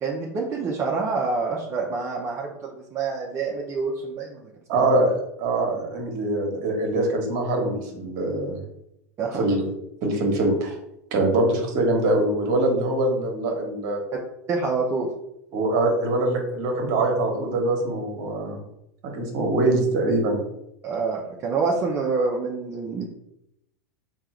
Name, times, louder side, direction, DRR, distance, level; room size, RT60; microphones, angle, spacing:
voice 1, 0.0-4.9 9.2-9.4 14.5-15.1 20.8-23.1, right 4 dB, 30° right, -2 dB, 0.6 m, -27 dB
voice 2, 4.7-8.6 9.4-9.6 10.0-10.8 11.1-14.0 15.5-18.6 19.0-20.4, right 2 dB, 50° right, 2 dB, 1.2 m, -23 dB
3.5 x 2.4 x 4.3 m, 0.83 s
hypercardioid pair, 100°, 9 cm